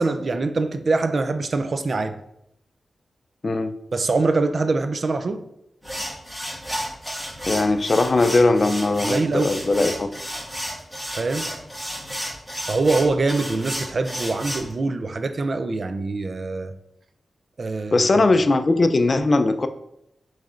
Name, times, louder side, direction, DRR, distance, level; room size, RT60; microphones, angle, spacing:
voice 1, 0.0-2.2 3.9-5.5 9.0-9.6 11.2-11.5 12.7-16.7 17.6-18.3, right 3 dB, 55° right, 0.4 m, -24 dB
voice 2, 3.4-3.8 7.5-10.1 17.9-19.7, left 2 dB, 50° left, 0.4 m, -19 dB
sound 1, 5.8-14.7, equal, ahead, 1.7 m, -32 dB
6.3 x 3.2 x 2.5 m
cardioid pair, 55°, 0 cm